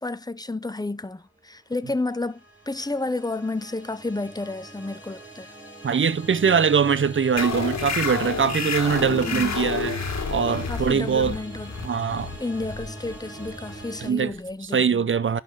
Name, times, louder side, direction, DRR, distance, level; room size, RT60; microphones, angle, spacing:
voice 1, 0.0-2.4 2.7-5.5 9.1-9.7 10.7-11.7 12.4-15.0, left 2 dB, 15° left, 0.5 m, -31 dB
sound 1, 1.8-14.1, right 1 dB, 5° right, 4.7 m, -41 dB
voice 2, 5.8-10.0 10.3-11.4 11.8-12.3 14.0-14.3 14.7-15.4, right 6 dB, 40° right, 0.7 m, -22 dB
sound 2, 7.4-14.5, left 5 dB, 60° left, 1.6 m, -30 dB
11.0 x 4.1 x 3.8 m
wide cardioid pair, 85°, 30 cm